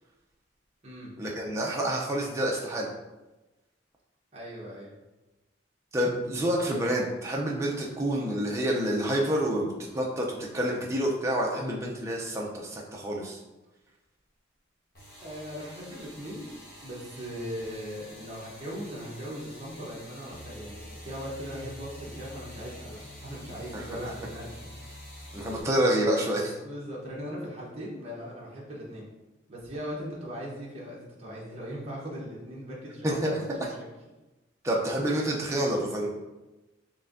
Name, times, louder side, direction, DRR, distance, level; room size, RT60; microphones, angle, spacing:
voice 1, 1.2-2.9 5.9-9.7 9.9-13.4 23.7-23.8 25.3-26.5 33.0-33.7 34.6-36.1, right 1 dB, 15° right, -2 dB, 0.5 m, -28 dB
voice 2, 4.3-4.9 15.2-16.5 16.8-24.9 26.6-29.1 29.5-33.9 35.5-35.7, equal, 30° right, -5 dB, 0.9 m, -39 dB
sound 1, 14.9-25.6, equal, 50° left, 1.3 m, -46 dB
4.3 x 3.5 x 2.6 m, 1.1 s
head